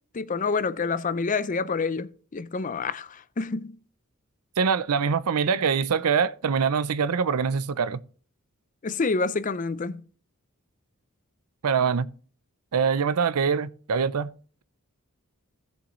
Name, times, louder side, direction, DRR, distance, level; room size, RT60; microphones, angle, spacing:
voice 1, 0.1-3.8 8.8-10.0, left 4 dB, 35° left, 0.5 m, -28 dB
voice 2, 4.6-8.0 11.6-12.1 12.7-14.3, right 6 dB, 80° right, 0.5 m, -24 dB
16.0 x 7.0 x 3.1 m
head